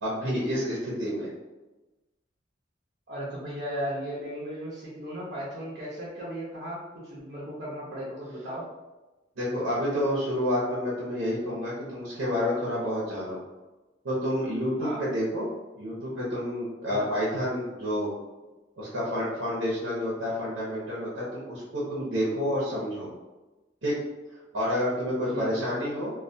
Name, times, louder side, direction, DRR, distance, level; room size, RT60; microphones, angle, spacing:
voice 1, 0.0-1.3 9.4-13.4 14.0-15.5 15.8-18.1 18.8-23.1 23.8-23.9 24.5-26.1, equal, 85° right, -6 dB, 0.7 m, -29 dB
voice 2, 3.1-6.8 7.1-8.6 14.8-15.0 16.9-17.1 25.3-25.6, equal, 50° right, -7 dB, 0.6 m, -36 dB
2.2 x 2.2 x 2.6 m, 1.1 s
head